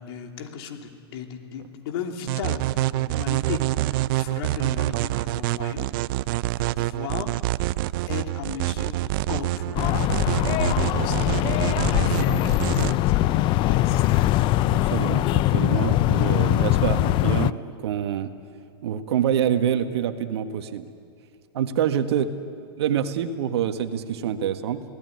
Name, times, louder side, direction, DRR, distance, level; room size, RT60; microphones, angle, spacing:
voice 1, 0.0-5.9 6.5-7.3 8.1-9.9 10.2-11.3 12.0-14.0, left 7 dB, 60° left, 3 dB, 3.1 m, -36 dB
sound 1, 2.3-12.9, right 17 dB, 50° right, 0.5 m, -26 dB
sound 2, 9.8-17.5, left 15 dB, 35° left, 0.6 m, -22 dB
voice 2, 14.7-18.3 18.8-20.9 21.5-22.3 22.8-24.8, right 9 dB, 70° right, 8 dB, 1.8 m, -26 dB
28.5 x 18.0 x 9.6 m, 2.4 s
hypercardioid pair, 120°, 14 cm